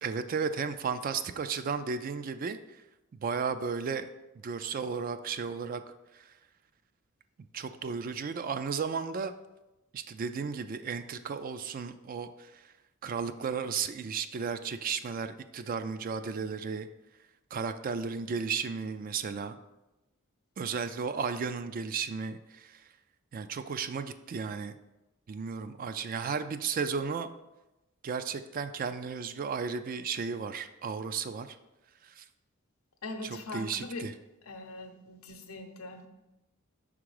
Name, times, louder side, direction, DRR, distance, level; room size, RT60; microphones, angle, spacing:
voice 1, 0.0-2.6 3.1-4.1 4.4-5.8 6.1-6.2 7.5-9.3 9.9-12.5 13.0-16.9 17.5-19.6 20.6-22.8 23.3-24.8 25.3-27.3 28.0-31.6 32.0-32.2 33.2-34.1, right 5 dB, 40° right, 10 dB, 0.3 m, -34 dB
voice 2, 33.0-34.1 34.4-36.1, left 2 dB, 85° left, 5 dB, 0.7 m, -41 dB
5.9 x 3.7 x 4.8 m, 0.98 s
head